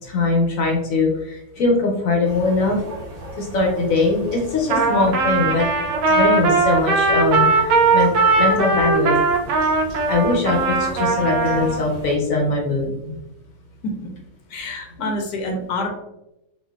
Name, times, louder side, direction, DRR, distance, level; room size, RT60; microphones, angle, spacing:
voice 1, 0.0-2.8 3.4-9.2 10.1-13.2 15.0-15.1, left 3 dB, 65° left, 0 dB, 1.0 m, -21 dB
sound 1, 2.2-12.2, equal, 35° right, 0.6 m, -37 dB
Trumpet, 4.7-11.8, right 3 dB, 75° right, 1.0 m, -19 dB
voice 2, 14.5-15.9, left 1 dB, 85° left, 2 dB, 1.2 m, -27 dB
4.0 x 2.5 x 2.3 m, 0.88 s
omnidirectional pair, 1.8 m